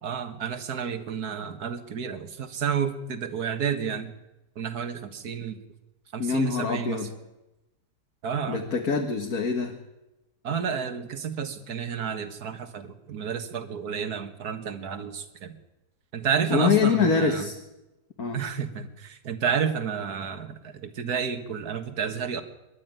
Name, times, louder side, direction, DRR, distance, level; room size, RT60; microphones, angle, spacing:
voice 1, 0.0-4.1 4.6-5.6 6.1-7.0 8.2-8.6 10.4-15.5 16.1-17.5 18.3-22.4, right 7 dB, 60° right, 8 dB, 2.0 m, -30 dB
voice 2, 6.2-7.1 8.5-9.7 16.5-17.5 18.2-18.4, left 6 dB, 55° left, 3 dB, 2.0 m, -24 dB
26.5 x 12.0 x 9.1 m, 1.0 s
omnidirectional pair, 1.8 m